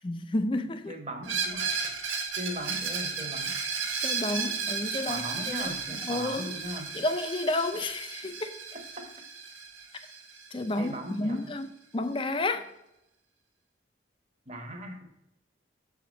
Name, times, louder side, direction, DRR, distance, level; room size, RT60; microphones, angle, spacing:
voice 1, 0.0-1.0 4.0-5.7 6.0-6.5 6.9-8.5 10.5-12.7, left 2 dB, 25° left, 10 dB, 0.5 m, -31 dB
voice 2, 0.9-1.9 2.3-3.5 5.1-6.9 8.7-9.1 10.8-11.4 14.5-15.0, equal, 35° right, 4 dB, 1.1 m, -38 dB
Screech, 1.2-10.9, right 5 dB, 85° right, 1.2 m, -34 dB
6.7 x 4.9 x 5.1 m, 0.87 s
head